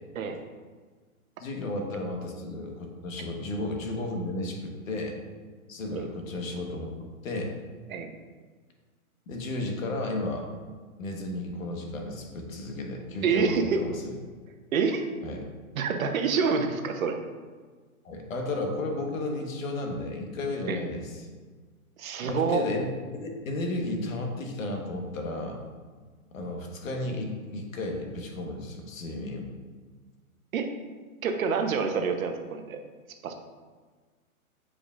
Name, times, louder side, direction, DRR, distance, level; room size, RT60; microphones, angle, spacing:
voice 1, 1.4-5.2 5.7-7.5 9.3-10.5 11.0-14.1 15.2-15.4 18.0-21.3 22.2-25.6 26.3-29.5, left 2 dB, 65° left, 2 dB, 1.4 m, -33 dB
voice 2, 13.2-13.8 14.7-15.0 15.7-17.2 20.7-20.8 22.0-22.6 30.5-30.7 31.2-32.8 33.2-33.3, right 5 dB, 65° right, 5 dB, 0.9 m, -27 dB
8.0 x 4.9 x 2.5 m, 1.5 s
hypercardioid pair, 145°, 44 cm